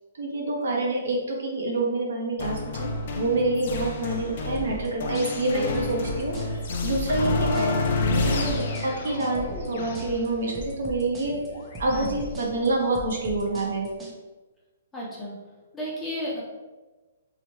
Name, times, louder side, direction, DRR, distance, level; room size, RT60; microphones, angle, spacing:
voice 1, 0.2-7.7 8.1-11.4 11.8-13.9, right 2 dB, 75° right, -1 dB, 0.6 m, -27 dB
sound 1, 2.4-12.1, left 3 dB, 55° left, 0.4 m, -29 dB
sound 2, 4.6-14.1, equal, 15° right, 0.5 m, -39 dB
voice 2, 14.9-15.4 15.7-16.4, equal, 15° left, -6 dB, 0.8 m, -32 dB
2.8 x 2.0 x 3.0 m, 1.2 s
hypercardioid pair, 140°, 0 cm